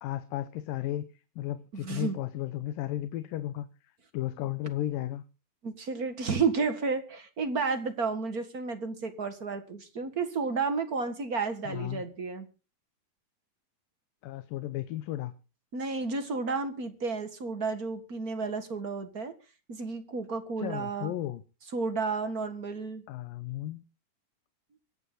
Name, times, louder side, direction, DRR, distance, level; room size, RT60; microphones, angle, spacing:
voice 1, 0.0-1.1 1.4-3.7 4.1-5.2 11.7-12.0 14.2-15.3 20.6-21.4 23.1-23.8, left 13 dB, 75° left, 12 dB, 2.5 m, -34 dB
voice 2, 1.7-2.2 5.6-12.5 15.7-19.3 19.7-21.1 21.7-23.0, right 4 dB, 40° right, 8 dB, 1.3 m, -32 dB
25.0 x 9.1 x 4.0 m, 0.34 s
omnidirectional pair, 4.1 m